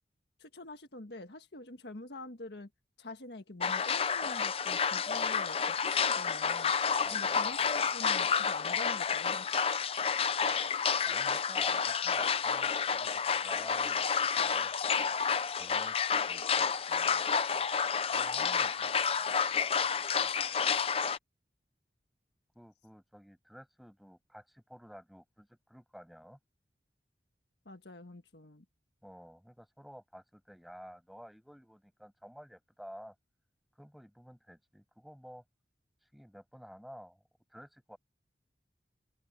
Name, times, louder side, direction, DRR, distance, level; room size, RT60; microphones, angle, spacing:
voice 1, 0.4-2.7 3.0-6.7 7.1-9.7 27.6-28.6, left 2 dB, 70° left, 1.6 m, -46 dB
sound 1, 3.6-21.2, left 6 dB, 35° left, 0.5 m, -30 dB
voice 2, 7.0-7.7 11.0-14.1 14.3-14.7 15.6-17.3 18.1-20.6 22.6-26.4 29.0-33.2 33.7-35.4 36.0-37.2 37.5-38.0, equal, ahead, 6.9 m, -51 dB
open air
head